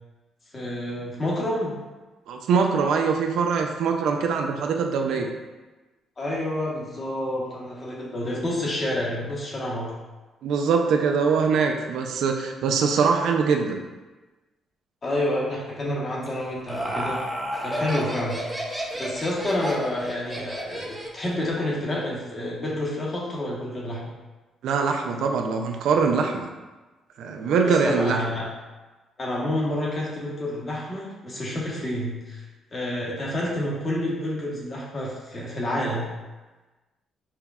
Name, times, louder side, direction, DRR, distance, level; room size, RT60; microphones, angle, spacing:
voice 1, 0.5-1.7 5.1-5.3 6.2-9.9 15.0-17.2 17.6-18.4 19.0-24.1 27.6-28.5 29.2-32.4 32.7-36.1, left 1 dB, 35° left, -4 dB, 1.0 m, -29 dB
voice 2, 2.3-5.3 10.4-13.8 24.6-26.5 27.2-28.2, right 5 dB, 80° right, 3 dB, 0.4 m, -23 dB
Laughter, 16.2-21.4, right 1 dB, 10° right, 0.6 m, -32 dB
5.6 x 2.2 x 2.3 m, 1.2 s
cardioid pair, 90°, 0 cm